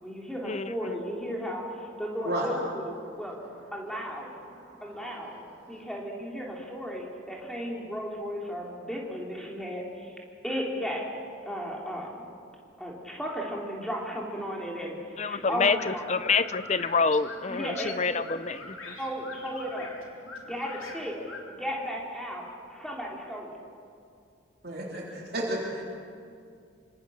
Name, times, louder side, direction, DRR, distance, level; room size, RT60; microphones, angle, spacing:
voice 1, 0.0-3.4 3.7-4.3 4.8-5.4 5.7-10.1 10.4-11.0 11.5-12.3 12.8-16.3 17.5-18.2 18.9-19.9 20.4-21.2 21.5-23.5, equal, 5° left, -2 dB, 3.8 m, -35 dB
voice 2, 15.2-18.9, left 4 dB, 35° left, 14 dB, 0.7 m, -27 dB
sound 1, 15.4-21.4, left 3 dB, 85° left, 3.6 m, -44 dB
voice 3, 24.6-25.9, right 1 dB, 50° right, -3 dB, 3.6 m, -32 dB
27.0 x 25.5 x 6.6 m, 2.4 s
head